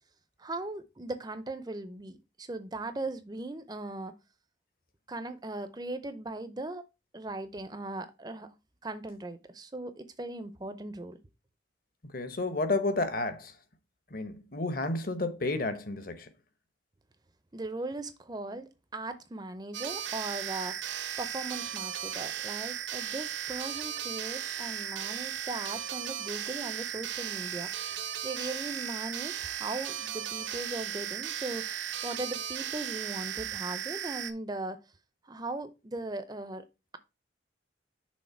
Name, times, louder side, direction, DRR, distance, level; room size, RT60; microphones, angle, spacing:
voice 1, 0.4-4.1 5.1-6.8 7.1-8.5 8.8-11.2 17.5-20.8 21.2-34.8 35.2-36.7, right 2 dB, 20° right, 0.6 m, -39 dB
voice 2, 12.1-13.6 14.1-16.3, left 2 dB, 50° left, 1.0 m, -31 dB
sound 1, 19.7-34.3, right 9 dB, 75° right, 0.7 m, -36 dB
6.4 x 3.8 x 5.7 m
head